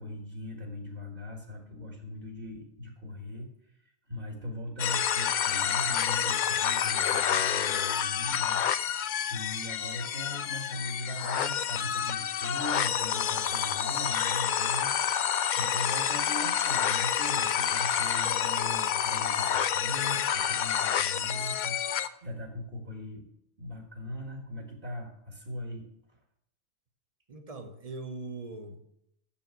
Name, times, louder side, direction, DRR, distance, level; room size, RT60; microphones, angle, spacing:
voice 1, 0.0-3.5 4.1-23.3 23.6-25.9, left 1 dB, 50° right, 1 dB, 1.9 m, -39 dB
sound 1, 4.8-22.1, left 9 dB, 60° left, 0.5 m, -28 dB
voice 2, 27.3-28.8, right 3 dB, 35° right, 7 dB, 1.0 m, -41 dB
7.2 x 7.0 x 8.2 m, 0.77 s
omnidirectional pair, 1.2 m